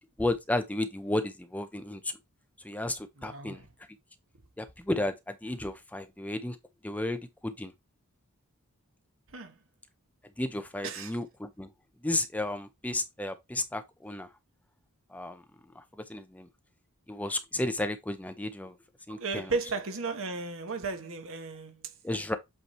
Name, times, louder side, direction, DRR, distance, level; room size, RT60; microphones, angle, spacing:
voice 1, 0.2-2.1 2.6-3.6 4.6-6.6 6.8-7.7 10.4-11.7 12.0-14.3 15.1-15.4 15.7-15.8 16.1-16.5 17.1-18.7 19.1-19.5 22.0-22.4, left 1 dB, 5° left, 0.5 m, -33 dB
voice 2, 3.2-3.7 9.3-9.6 10.8-11.2 19.1-21.9, right 4 dB, 60° right, 1.1 m, -35 dB
7.9 x 3.2 x 4.2 m
head